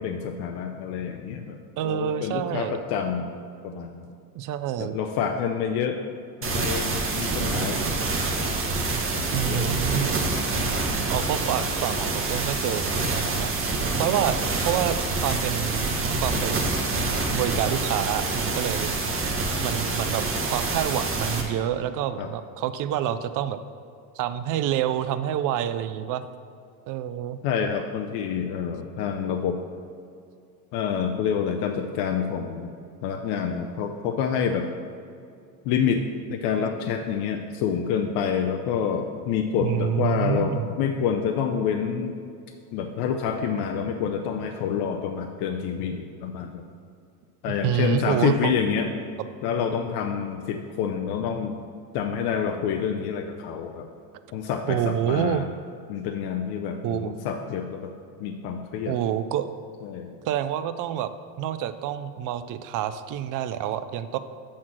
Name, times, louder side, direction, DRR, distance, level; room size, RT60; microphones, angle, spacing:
voice 1, 0.0-1.6 1.8-3.3 3.6-4.1 4.8-6.0 6.4-8.2 9.1-9.8 22.2-22.3 27.4-29.6 30.7-32.7 33.0-34.7 35.6-42.2 42.7-46.6 47.4-49.0 49.4-51.6 51.9-53.9 54.3-55.5 55.9-57.9 58.2-58.9 59.8-60.1, left 7 dB, 60° left, 4 dB, 0.7 m, -28 dB
voice 2, 1.8-2.8 4.3-5.0 9.3-10.1 11.1-16.7 17.3-18.9 19.6-23.6 24.2-26.2 26.9-27.4 39.6-40.7 47.6-48.5 54.7-55.5 56.8-57.1 58.8-59.5 60.3-61.1 61.4-64.2, right 10 dB, 45° right, 12 dB, 0.5 m, -27 dB
sound 1, 6.4-21.4, right 3 dB, 30° right, 1.3 m, -26 dB
7.5 x 4.3 x 6.0 m, 2.4 s
hypercardioid pair, 90°, 45 cm